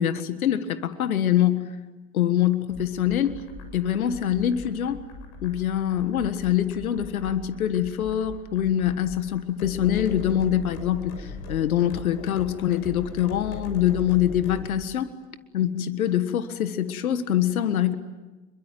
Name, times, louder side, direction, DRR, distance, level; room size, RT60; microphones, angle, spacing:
voice 1, 0.0-1.8 2.1-3.4 3.7-5.0 5.4-15.1 15.5-18.0, left 10 dB, 85° left, 11 dB, 1.7 m, -24 dB
sound 1, 2.7-14.6, left 3 dB, 55° left, 7.3 m, -40 dB
27.5 x 22.5 x 9.3 m, 1.2 s
hypercardioid pair, 90°, 41 cm